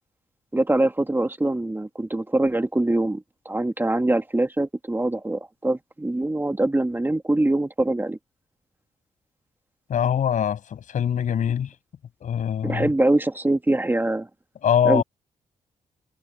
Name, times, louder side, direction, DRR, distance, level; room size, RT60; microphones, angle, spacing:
voice 1, 0.5-8.2 12.6-14.3 14.8-15.0, right 2 dB, 15° right, 2.1 m, -23 dB
voice 2, 9.9-11.7 12.2-12.9 14.6-15.0, left 9 dB, 75° left, 6.6 m, -23 dB
cardioid pair, 80°, 13 cm